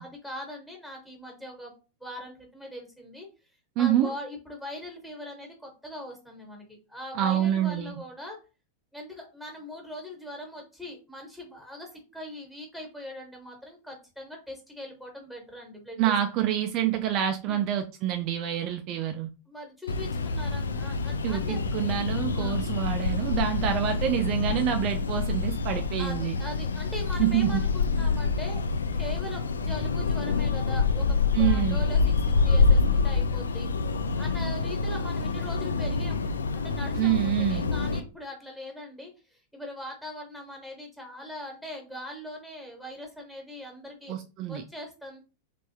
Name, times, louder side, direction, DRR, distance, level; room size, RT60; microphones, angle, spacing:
voice 1, 0.0-1.7 2.0-3.3 3.7-8.4 8.9-16.1 17.4-17.7 19.5-21.9 22.4-22.6 26.0-28.6 28.9-36.3 36.5-44.1 44.5-45.2, left 1 dB, 5° left, 1.4 m, -41 dB
voice 2, 3.8-4.1 7.1-8.0 16.0-19.3 21.2-26.4 27.2-27.6 31.3-31.9 37.0-37.7 44.1-44.6, right 11 dB, 40° right, 0.3 m, -27 dB
sound 1, 19.9-38.0, left 4 dB, 70° left, 0.3 m, -27 dB
3.3 x 3.3 x 2.8 m
figure-of-eight pair, 90°, 0 cm